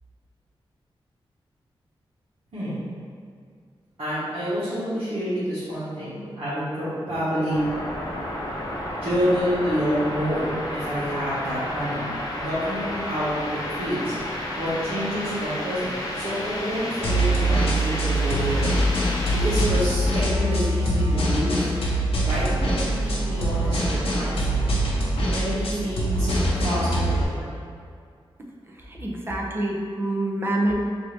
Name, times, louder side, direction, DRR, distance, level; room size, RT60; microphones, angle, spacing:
voice 1, 4.0-7.6 9.0-12.0 12.3-14.1 14.6-18.7 19.3-21.7 22.2-24.6 25.3-26.3 26.6-27.6, equal, 75° right, -15 dB, 1.3 m, -28 dB
sound 1, 7.5-19.7, left 1 dB, 40° left, 0.7 m, -32 dB
sound 2, 17.0-27.2, right 1 dB, 75° left, 0.8 m, -23 dB
voice 2, 29.0-30.7, right 1 dB, 25° right, -2 dB, 0.5 m, -26 dB
4.5 x 2.8 x 3.2 m, 2.2 s
wide cardioid pair, 125°, 10 cm